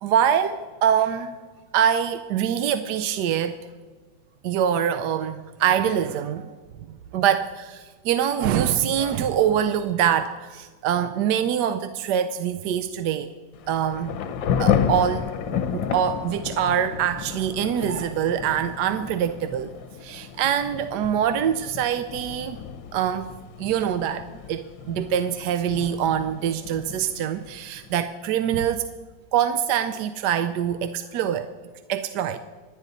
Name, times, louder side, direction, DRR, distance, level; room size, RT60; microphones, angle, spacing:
voice 1, 0.0-1.4 1.7-3.6 4.4-6.6 6.9-13.3 13.7-14.3 14.6-15.3 15.5-19.7 20.0-22.6 22.9-23.3 23.6-28.9 29.3-31.5 31.9-32.4, right 9 dB, 70° right, 1.1 m, -24 dB
Thunder / Rain, 13.5-28.0, left 8 dB, 85° left, 1.6 m, -31 dB
26.5 x 9.5 x 4.1 m
omnidirectional pair, 2.0 m